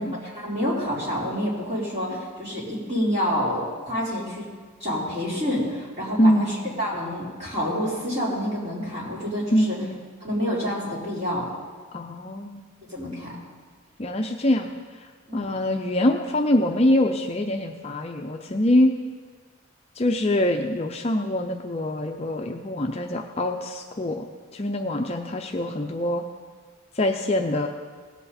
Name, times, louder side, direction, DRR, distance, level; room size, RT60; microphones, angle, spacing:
voice 1, 0.3-4.5 4.8-9.8 10.2-11.5 12.9-13.3 15.3-15.5, equal, 30° right, -7 dB, 3.9 m, -28 dB
voice 2, 6.2-6.8 9.5-10.0 11.9-12.7 14.0-14.7 15.0-18.9 20.0-24.3 24.5-26.2 26.9-27.7, left 1 dB, 30° left, 3 dB, 0.5 m, -24 dB
18.0 x 8.1 x 4.2 m, 1.5 s
head